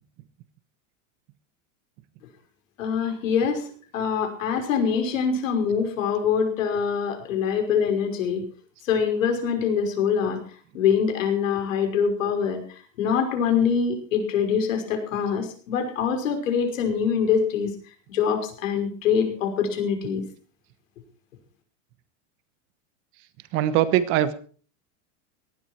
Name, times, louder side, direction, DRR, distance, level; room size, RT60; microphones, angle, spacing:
voice 1, 2.8-3.7 3.9-8.4 8.9-10.4 10.7-12.6 13.0-17.7 18.1-20.2, left 7 dB, 90° left, 5 dB, 5.7 m, -24 dB
voice 2, 23.5-24.3, right 12 dB, 35° right, 13 dB, 1.2 m, -21 dB
18.0 x 13.0 x 4.5 m, 0.41 s
supercardioid pair, 170°, 38 cm